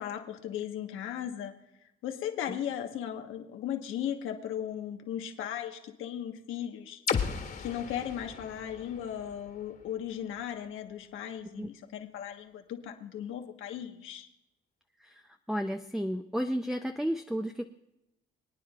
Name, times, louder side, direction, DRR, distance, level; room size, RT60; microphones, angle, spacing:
voice 1, 0.0-1.5 2.0-7.0 7.6-14.3, left 10 dB, 85° left, 4 dB, 1.2 m, -37 dB
sound 1, 7.1-10.9, left 6 dB, 50° left, 1.8 m, -36 dB
voice 2, 15.0-17.7, equal, ahead, 6 dB, 0.6 m, -33 dB
24.5 x 9.4 x 2.4 m, 0.87 s
cardioid pair, 90°, 20 cm